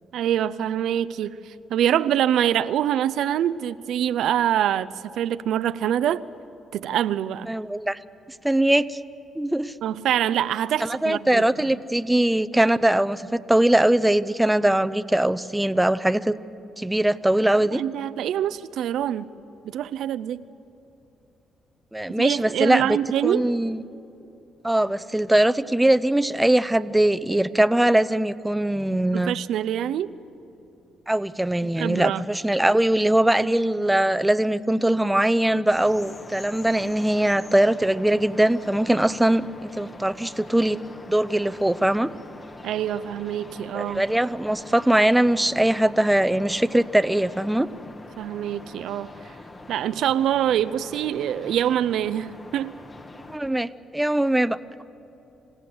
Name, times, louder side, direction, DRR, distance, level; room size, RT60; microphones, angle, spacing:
voice 1, 0.1-6.2 6.7-7.6 9.8-11.8 17.7-19.3 19.6-20.4 22.2-23.4 29.1-30.1 31.8-32.2 42.6-44.1 48.2-49.2 49.7-52.7, right 10 dB, 80° right, 0.5 m, -25 dB
voice 2, 7.5-8.0 8.4-9.0 9.4-9.7 10.8-16.4 16.8-17.8 21.9-23.0 23.2-23.8 24.6-29.4 31.1-40.8 41.1-42.1 43.7-47.7 53.3-54.8, right 1 dB, 10° right, 0.5 m, -21 dB
sound 1, 35.7-53.4, left 2 dB, 30° left, 1.4 m, -44 dB
26.5 x 16.0 x 7.9 m
cardioid pair, 90°, 0 cm